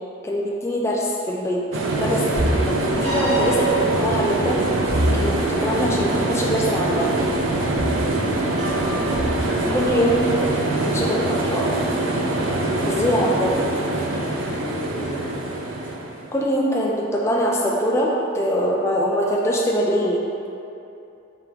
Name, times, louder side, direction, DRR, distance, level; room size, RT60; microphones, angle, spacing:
voice 1, 0.2-1.6 2.0-2.2 2.5-4.6 5.1-7.2 9.7-10.3 10.9-11.8 12.9-13.5 16.3-20.2, equal, 15° left, -3 dB, 0.3 m, -23 dB
sound 1, 1.7-16.4, right 2 dB, 85° right, 0.4 m, -24 dB
sound 2, 2.3-10.6, right 1 dB, 40° right, 1.3 m, -28 dB
voice 2, 7.6-8.1 9.3-10.0 14.5-15.3, left 1 dB, 75° left, -5 dB, 0.6 m, -35 dB
3.5 x 3.5 x 2.8 m, 2.7 s
head